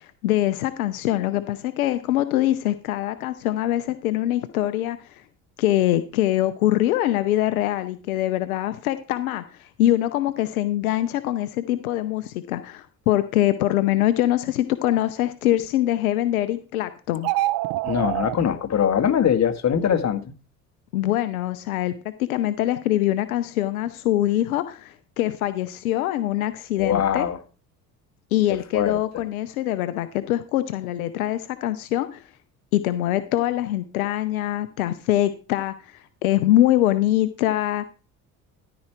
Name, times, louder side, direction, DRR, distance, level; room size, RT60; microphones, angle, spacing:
voice 1, 0.0-5.2 5.6-17.3 20.9-21.9 22.2-27.3 28.3-32.2 32.7-37.9, left 14 dB, 80° left, 12 dB, 0.7 m, -23 dB
sound 1, 17.2-18.4, right 17 dB, 55° right, 0.7 m, -25 dB
voice 2, 17.8-20.3 26.8-27.4 28.7-28.9, left 8 dB, 40° left, 7 dB, 1.7 m, -22 dB
13.5 x 4.9 x 4.5 m, 0.35 s
hypercardioid pair, 60°, 42 cm